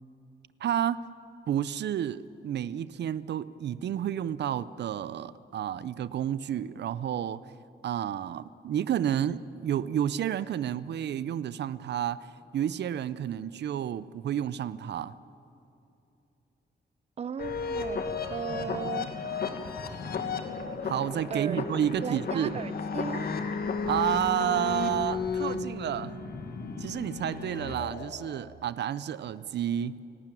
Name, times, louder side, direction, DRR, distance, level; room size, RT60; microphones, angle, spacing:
voice 1, 0.6-1.1 1.5-7.5 7.8-15.1 20.8-22.6 23.9-26.2 26.8-30.0, right 10 dB, 80° right, 0.5 m, -30 dB
voice 2, 17.2-18.0 18.3-19.1 21.3-21.7 22.0-23.3, right 7 dB, 35° right, 0.6 m, -36 dB
sound 1, 17.4-28.4, left 5 dB, 60° left, 1.8 m, -34 dB
29.5 x 12.0 x 9.1 m
wide cardioid pair, 130°, 18 cm